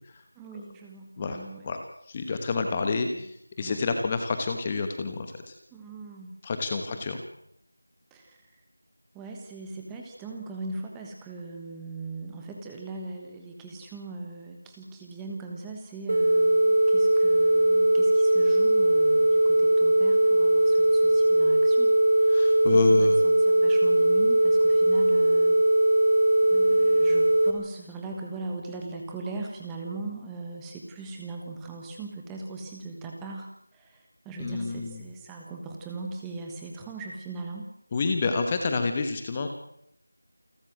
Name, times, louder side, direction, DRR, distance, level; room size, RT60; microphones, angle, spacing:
voice 1, 0.3-1.6 2.7-3.2 3.6-4.1 5.7-6.3 6.9-7.0 8.1-8.6 9.1-21.9 22.3-22.4 22.7-25.6 26.5-37.7, right 3 dB, 5° right, 1 dB, 1.3 m, -40 dB
voice 2, 2.1-3.3 3.6-5.5 6.4-7.2 22.3-23.1 34.4-35.0 37.9-39.5, left 4 dB, 15° left, 6 dB, 1.2 m, -28 dB
sound 1, 16.1-27.5, right 1 dB, 40° right, 3.0 m, -20 dB
28.5 x 13.0 x 7.7 m, 0.72 s
figure-of-eight pair, 175°, 0 cm